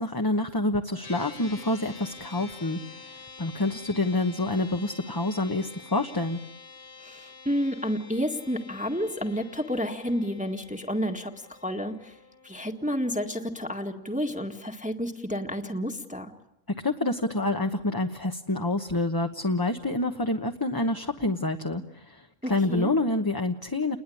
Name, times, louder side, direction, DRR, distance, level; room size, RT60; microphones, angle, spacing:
voice 1, 0.0-6.4 16.8-24.0, left 2 dB, 20° left, 4 dB, 1.2 m, -27 dB
sound 1, 1.0-14.6, left 4 dB, 40° left, 1.6 m, -48 dB
voice 2, 7.0-12.2 12.4-16.3 22.4-22.9, equal, 5° right, 3 dB, 1.7 m, -30 dB
30.0 x 21.0 x 8.6 m, 0.88 s
omnidirectional pair, 1.3 m